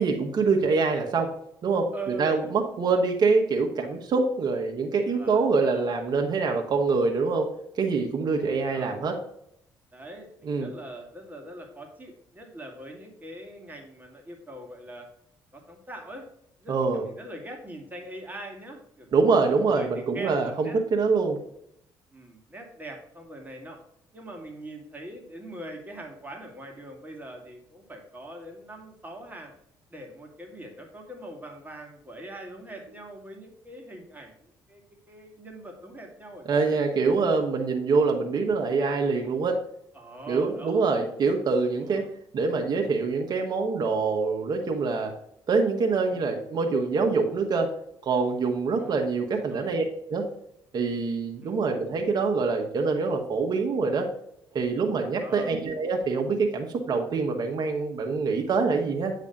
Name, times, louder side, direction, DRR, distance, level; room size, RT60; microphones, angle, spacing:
voice 1, 0.0-1.3 1.6-1.9 2.2-7.5 7.8-9.2 10.4-10.7 16.7-17.1 19.1-21.4 36.4-39.6 40.3-42.0 42.3-45.1 45.5-47.7 48.0-49.8 50.1-50.3 50.7-54.1 54.5-59.1, right 4 dB, 50° right, 2 dB, 1.2 m, -25 dB
voice 2, 1.9-2.5 2.8-3.0 5.1-5.9 8.3-8.9 9.9-15.1 15.5-16.3 16.6-19.1 19.7-20.8 22.1-23.8 24.1-29.5 29.9-34.8 35.1-36.8 39.9-40.8 41.7-42.1 46.1-46.2 48.8-49.0 49.5-49.7 51.4-51.6 55.1-55.5, right 1 dB, 20° right, 2 dB, 2.0 m, -42 dB
8.5 x 3.3 x 5.3 m, 0.71 s
supercardioid pair, 75°, 9 cm